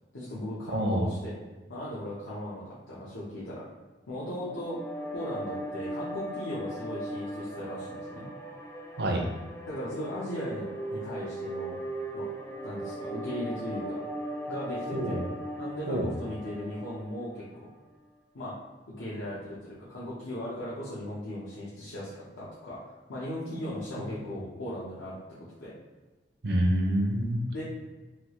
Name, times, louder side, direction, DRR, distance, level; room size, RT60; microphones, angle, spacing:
voice 1, 0.1-1.3 1.7-3.6 4.1-4.8 5.1-8.3 9.7-11.8 12.1-12.3 12.6-14.0 14.5-15.2 15.6-17.7 18.3-18.6 19.0-25.2 25.6-25.7 27.5-27.6, left 1 dB, 85° left, -9 dB, 0.7 m, -37 dB
voice 2, 0.7-1.1 9.0-9.3 14.9-15.2 15.9-16.1 24.2-24.3 26.4-27.4, right 1 dB, 60° right, 1 dB, 0.5 m, -27 dB
sound 1, 4.2-17.5, right 1 dB, 10° left, 0.3 m, -38 dB
3.3 x 2.3 x 2.9 m, 1.3 s
head